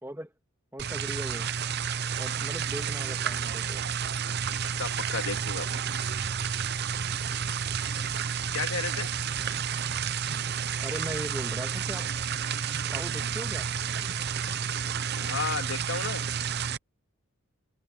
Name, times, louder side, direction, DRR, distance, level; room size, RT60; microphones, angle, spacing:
voice 1, 0.0-0.3 0.7-1.5 2.2-3.9 10.8-12.3 12.8-13.7, right 1 dB, 10° right, 1.9 m, -39 dB
sound 1, 0.8-16.8, right 7 dB, 50° right, 0.7 m, -31 dB
voice 2, 4.8-5.8 8.5-9.1 15.2-16.2, left 5 dB, 70° left, 2.2 m, -33 dB
head